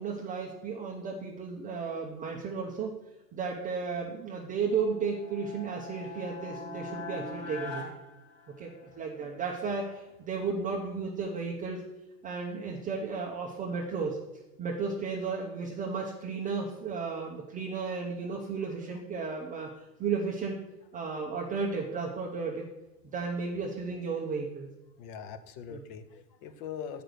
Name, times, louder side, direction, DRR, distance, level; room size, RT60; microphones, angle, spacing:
voice 1, 0.0-2.9 3.3-7.8 8.6-11.8 12.2-14.2 14.6-19.7 20.0-20.6 20.9-22.7 23.0-24.7 25.7-25.8, right 5 dB, 15° right, -1 dB, 0.6 m, -34 dB
sound 1, 4.6-9.0, left 3 dB, 45° left, 3.2 m, -42 dB
voice 2, 25.0-27.0, left 7 dB, 30° left, 11 dB, 0.4 m, -42 dB
7.7 x 5.1 x 6.5 m, 1.0 s
hypercardioid pair, 120°, 49 cm